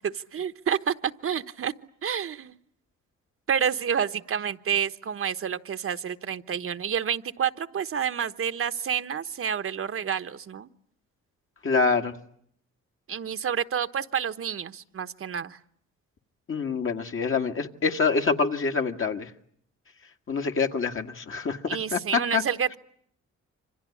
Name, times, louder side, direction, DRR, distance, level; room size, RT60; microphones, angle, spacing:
voice 1, 0.0-1.7 2.0-2.6 3.5-10.7 13.1-15.6 21.7-22.8, right 8 dB, 45° right, 1.1 m, -29 dB
voice 2, 11.6-12.2 16.5-19.3 20.3-22.4, left 4 dB, 45° left, 1.9 m, -26 dB
27.5 x 25.5 x 8.5 m
cardioid pair, 90°, 30 cm